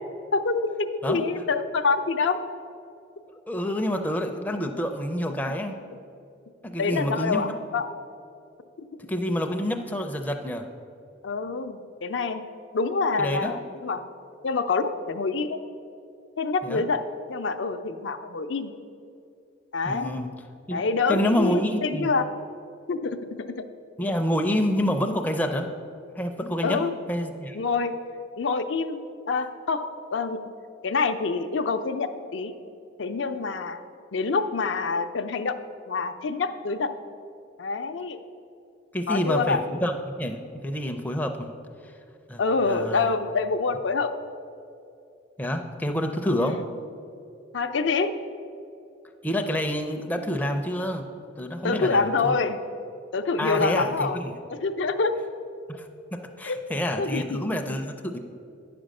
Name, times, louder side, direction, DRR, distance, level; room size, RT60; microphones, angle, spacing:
voice 1, 0.3-2.4 5.5-5.6 6.8-7.9 11.2-12.4 12.7-14.0 14.4-15.6 16.4-17.0 17.3-18.7 19.7-20.2 20.7-22.3 22.9-23.7 26.6-26.9 27.5-28.0 28.4-30.4 30.8-32.5 33.0-33.8 34.1-35.5 35.9-36.9 37.6-38.2 39.1-39.6 42.4-44.1 46.4-46.6 47.5-48.1 51.6-52.6 53.1-54.2 54.5-55.2 56.4-56.6 57.0-57.8, left 4 dB, 75° left, 8 dB, 0.5 m, -26 dB
voice 2, 3.3-5.8 6.6-7.6 9.1-10.7 13.2-13.5 16.6-16.8 19.8-20.3 20.7-20.8 21.1-22.1 24.0-25.7 26.2-26.8 27.1-27.6 38.9-41.5 41.8-41.9 42.3-42.4 42.7-43.1 45.4-46.6 49.2-51.0 51.4-52.3 53.4-54.3 55.7-58.2, equal, 10° left, 4 dB, 0.4 m, -28 dB
9.4 x 5.1 x 6.4 m, 2.5 s
head